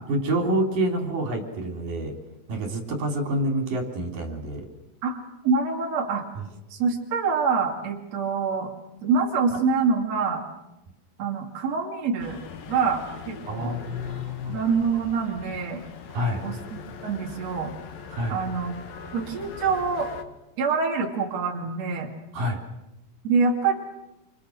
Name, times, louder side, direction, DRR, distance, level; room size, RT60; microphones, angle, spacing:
voice 1, 0.1-2.2 2.5-4.7 13.5-14.6 16.1-16.4 18.1-18.4 22.3-22.6, right 1 dB, 75° right, 3 dB, 5.3 m, -27 dB
voice 2, 5.4-6.3 6.7-8.7 9.0-10.4 11.2-12.4 12.7-13.8 14.5-15.8 16.4-17.7 18.3-18.7 19.1-20.1 20.6-22.1 23.2-23.7, right 5 dB, 50° right, 0 dB, 3.5 m, -25 dB
sound 1, 12.2-20.2, left 6 dB, 90° left, 3.5 m, -41 dB
28.5 x 28.0 x 6.6 m, 0.94 s
omnidirectional pair, 3.9 m